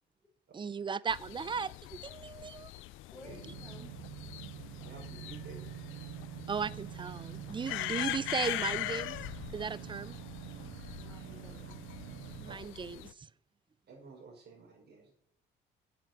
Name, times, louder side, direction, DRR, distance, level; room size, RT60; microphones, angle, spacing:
voice 1, 0.5-2.7 6.5-9.2 9.5-10.2 12.4-13.1, right 6 dB, 25° right, 20 dB, 0.5 m, -36 dB
sound 1, 1.1-13.1, left 16 dB, 85° left, 0.4 m, -42 dB
voice 2, 3.1-3.9 7.7-8.2 11.0-11.8, left 2 dB, 10° left, -3 dB, 4.7 m, -54 dB
sound 2, 3.3-12.6, right 16 dB, 85° right, 0.4 m, -46 dB
voice 3, 4.8-5.6 6.0-6.3 12.5-12.6 13.9-15.1, right 4 dB, 55° right, -1 dB, 5.4 m, -52 dB
8.8 x 8.7 x 6.1 m, 0.66 s
cardioid pair, 90°, 20 cm